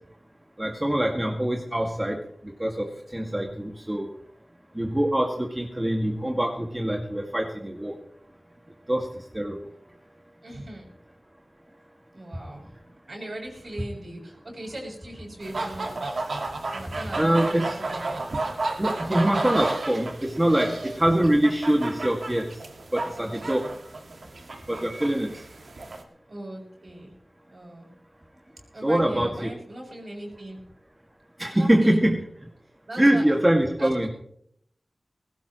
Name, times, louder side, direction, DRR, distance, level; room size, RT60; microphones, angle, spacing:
voice 1, 0.6-4.1 4.7-8.0 8.9-9.6 17.2-17.7 18.8-22.6 22.9-23.7 24.7-25.3 28.8-29.5 31.4-32.2 33.0-34.1, right 1 dB, 20° right, 1 dB, 2.1 m, -24 dB
voice 2, 10.4-10.9 12.1-16.0 16.7-18.4 26.3-27.1 27.5-27.9 28.7-30.6 31.5-32.1 32.9-33.4 33.8-34.1, right 1 dB, 65° right, -1 dB, 6.7 m, -39 dB
sound 1, 15.4-26.0, right 2 dB, 85° right, 1.8 m, -32 dB
19.0 x 17.0 x 3.1 m, 0.68 s
cardioid pair, 40°, 0 cm